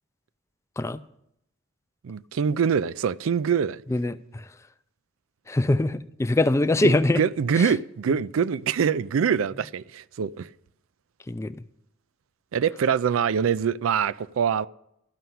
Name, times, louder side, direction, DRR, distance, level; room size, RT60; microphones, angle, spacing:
voice 1, 2.0-3.8 6.8-10.5 12.5-14.7, right 7 dB, 80° right, 0.4 m, -24 dB
voice 2, 3.9-4.4 5.5-7.2 7.5-7.7 11.3-11.6, left 2 dB, 15° left, 0.3 m, -23 dB
12.5 x 5.7 x 9.3 m
head